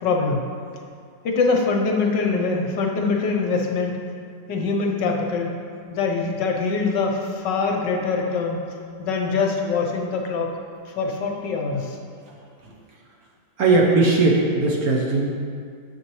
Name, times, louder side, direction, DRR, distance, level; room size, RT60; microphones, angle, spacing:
voice 1, 0.0-0.4 1.2-3.9 4.5-5.5 5.9-8.6 9.0-10.5 10.9-12.0, left 4 dB, 70° left, 1 dB, 1.4 m, -23 dB
voice 2, 13.6-15.3, right 3 dB, 55° right, -2 dB, 1.3 m, -19 dB
9.4 x 7.0 x 3.1 m, 2.2 s
omnidirectional pair, 2.1 m